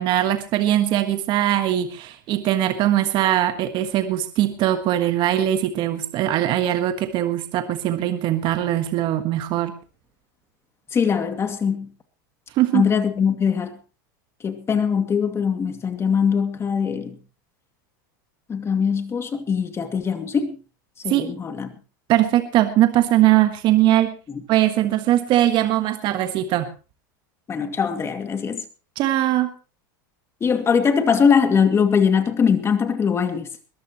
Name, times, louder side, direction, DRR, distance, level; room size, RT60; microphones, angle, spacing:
voice 1, 0.0-9.7 12.6-12.8 21.1-21.2 22.1-24.2 24.5-26.7 29.0-29.5, right 13 dB, 45° right, 1.5 m, -20 dB
voice 2, 10.9-11.9 12.7-13.7 14.4-17.2 18.5-20.6 21.0-21.7 24.3-24.4 27.5-28.7 30.4-33.5, left 6 dB, 25° left, 2.3 m, -21 dB
21.5 x 13.5 x 3.0 m
hypercardioid pair, 110°, 11 cm